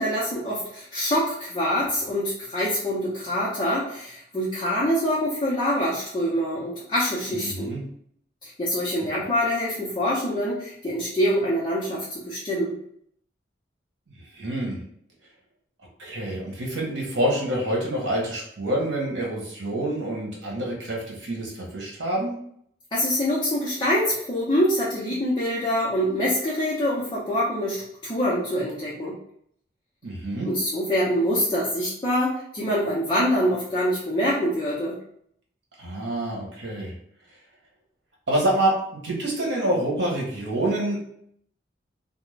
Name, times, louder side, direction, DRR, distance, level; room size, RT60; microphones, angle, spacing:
voice 1, 0.0-7.7 8.4-12.8 22.9-29.2 30.4-35.0, equal, 25° left, -8 dB, 0.6 m, -25 dB
voice 2, 7.3-7.8 14.3-14.8 16.0-22.3 30.0-30.5 35.8-36.9 38.3-38.7 39.0-41.0, right 1 dB, 75° right, -2 dB, 1.0 m, -27 dB
2.4 x 2.1 x 3.1 m, 0.68 s
head